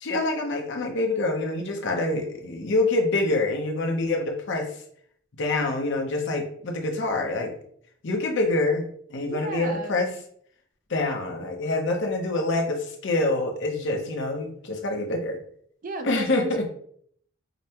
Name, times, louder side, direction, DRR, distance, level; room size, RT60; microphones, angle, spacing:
voice 1, 0.0-4.7 5.4-7.5 8.0-8.8 9.1-10.1 10.9-15.4 16.0-16.6, left 2 dB, 60° left, 3 dB, 0.7 m, -26 dB
voice 2, 9.2-9.9 15.8-16.7, right 2 dB, 40° right, 6 dB, 0.5 m, -34 dB
5.1 x 2.1 x 2.8 m, 0.63 s
head